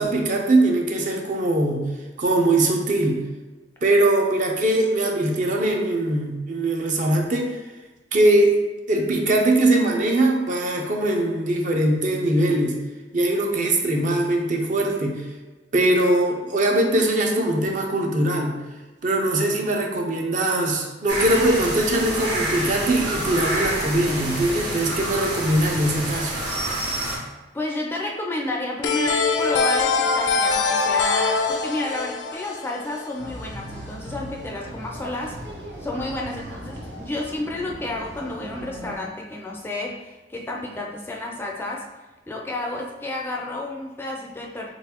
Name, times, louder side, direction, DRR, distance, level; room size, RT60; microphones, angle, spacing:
voice 1, 0.0-1.9 2.2-3.2 3.8-7.6 8.1-8.6 8.9-12.8 13.1-15.3 15.7-18.5 19.0-26.3, right 1 dB, 45° right, 1 dB, 0.6 m, -21 dB
sound 1, 21.1-27.2, right 1 dB, 90° right, 1.4 m, -28 dB
voice 2, 27.5-35.4 35.8-41.9 42.3-44.7, left 2 dB, 15° left, -1 dB, 0.3 m, -31 dB
sound 2, 28.8-33.5, left 4 dB, 85° left, 0.4 m, -23 dB
sound 3, 33.2-39.0, right 1 dB, 70° right, 0.9 m, -38 dB
3.9 x 3.5 x 2.9 m, 1.2 s
head